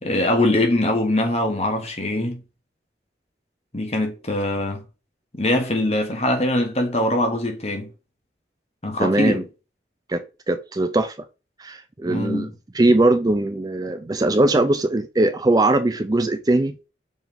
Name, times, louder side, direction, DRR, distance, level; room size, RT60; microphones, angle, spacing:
voice 1, 0.0-2.4 3.7-4.8 5.3-7.9 8.8-9.4 12.1-12.5, left 1 dB, 35° left, 1.5 m, -22 dB
voice 2, 9.0-9.4 10.1-11.2 11.6-12.5 12.7-16.7, right 2 dB, 20° right, 0.4 m, -20 dB
7.2 x 3.5 x 3.9 m
head